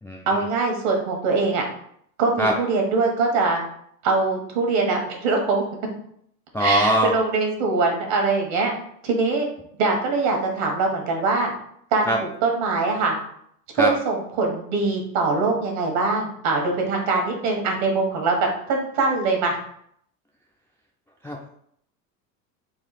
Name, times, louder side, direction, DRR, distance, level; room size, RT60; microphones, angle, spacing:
voice 1, 0.3-1.6 2.2-3.6 4.0-5.6 6.6-8.7 9.0-9.5 9.8-11.5 11.9-13.1 13.7-19.6, right 3 dB, 65° right, 2 dB, 1.5 m, -22 dB
voice 2, 6.5-7.1 12.1-12.2 13.8-13.9 21.2-21.5, right 1 dB, 5° left, -1 dB, 0.3 m, -21 dB
4.1 x 2.4 x 4.1 m, 0.69 s
hypercardioid pair, 85°, 45 cm